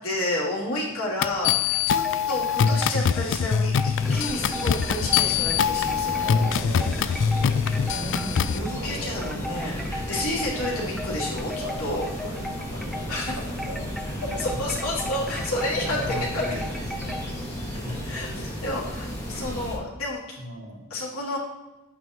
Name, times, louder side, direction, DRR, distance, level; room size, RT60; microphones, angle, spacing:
voice 1, 0.0-6.3 7.9-12.1 13.1-13.4 14.4-16.0 16.3-16.4 17.7-17.8 18.0-20.4 20.9-21.4, left 1 dB, 80° left, -5 dB, 3.2 m, -30 dB
sound 1, 1.2-8.6, left 7 dB, 60° left, 0.3 m, -24 dB
sound 2, 1.7-8.9 9.2-17.3, left 1 dB, ahead, 0.7 m, -37 dB
voice 2, 2.1-2.6 6.1-8.1 8.7-9.4 10.2-10.4 11.6-13.2 13.5-14.6 15.9-17.0 17.6-18.0 20.4-20.9, right 1 dB, 75° right, -3 dB, 2.7 m, -39 dB
sound 3, 4.0-19.8, equal, 15° left, 2.5 m, -34 dB
11.0 x 8.6 x 3.1 m, 1.1 s
head